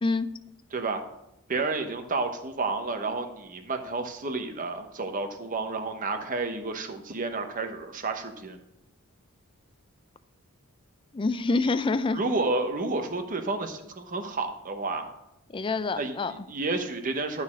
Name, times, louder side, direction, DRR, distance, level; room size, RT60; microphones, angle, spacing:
voice 1, 0.7-1.0 1.5-8.6 12.1-15.1 16.0-17.4, right 3 dB, 35° right, 6 dB, 0.9 m, -31 dB
voice 2, 11.1-12.2 15.5-16.3, left 3 dB, 20° left, 13 dB, 0.3 m, -26 dB
12.0 x 4.1 x 6.1 m, 0.84 s
head